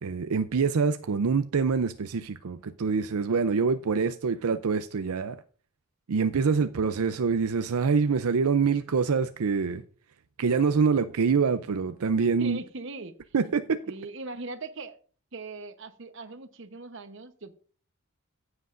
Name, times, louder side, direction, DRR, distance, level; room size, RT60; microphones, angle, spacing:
voice 1, 0.0-5.4 6.1-9.8 10.4-12.6 13.3-13.8, right 5 dB, 85° right, 0.5 m, -25 dB
voice 2, 12.4-13.1 13.9-15.0 15.3-17.5, right 3 dB, 55° right, 0.9 m, -40 dB
14.5 x 8.0 x 2.5 m
head